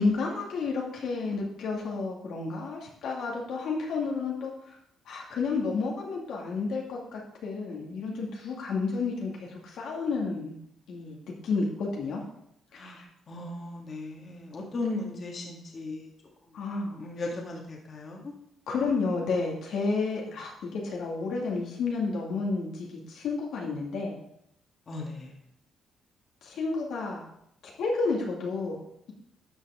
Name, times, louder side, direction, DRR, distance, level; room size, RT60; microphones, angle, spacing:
voice 1, 0.0-4.8 5.1-10.6 10.9-11.2 11.4-12.2 12.7-13.1 16.5-17.0 18.7-24.2 26.4-27.3 27.6-28.8, left 4 dB, 75° left, -2 dB, 2.0 m, -31 dB
voice 2, 12.7-16.1 16.4-16.6 17.0-18.3 24.9-25.4, left 2 dB, 45° left, 0 dB, 1.8 m, -37 dB
11.5 x 5.9 x 3.6 m, 0.76 s
cardioid pair, 90°, 0 cm